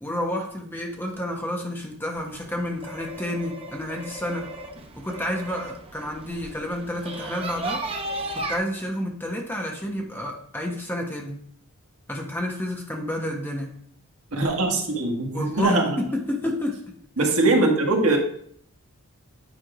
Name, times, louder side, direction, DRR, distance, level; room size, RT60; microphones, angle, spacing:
voice 1, 0.0-4.5 5.0-7.8 8.3-11.4 12.1-13.7 15.3-16.8, left 1 dB, 10° left, 1 dB, 1.0 m, -30 dB
sound 1, 2.1-8.6, right 2 dB, 25° right, 0.7 m, -35 dB
voice 2, 14.3-16.0 17.2-18.2, right 2 dB, 70° right, 1 dB, 1.5 m, -21 dB
9.1 x 3.6 x 4.9 m, 0.63 s
head